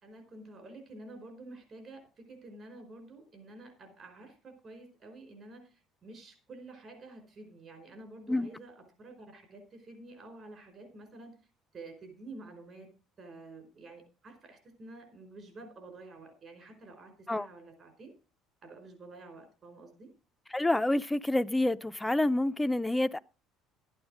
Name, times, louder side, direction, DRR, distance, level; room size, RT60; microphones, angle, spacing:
voice 1, 0.0-11.4 11.7-12.9 13.2-18.1 18.6-20.1, right 2 dB, 40° right, 5.0 m, -49 dB
voice 2, 20.5-23.2, left 1 dB, 10° left, 0.5 m, -28 dB
13.0 x 9.0 x 5.0 m
cardioid pair, 105°, 0 cm